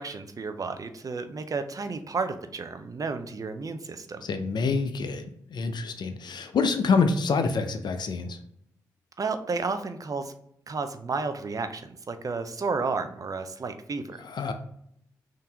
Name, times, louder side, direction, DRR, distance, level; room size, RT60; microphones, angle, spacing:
voice 1, 0.0-4.2 9.2-10.3 10.7-14.2, right 4 dB, 45° right, 9 dB, 0.6 m, -32 dB
voice 2, 4.2-8.4 14.2-14.5, left 4 dB, 60° left, 8 dB, 0.5 m, -27 dB
3.8 x 2.7 x 3.5 m, 0.72 s
supercardioid pair, 40°, 9 cm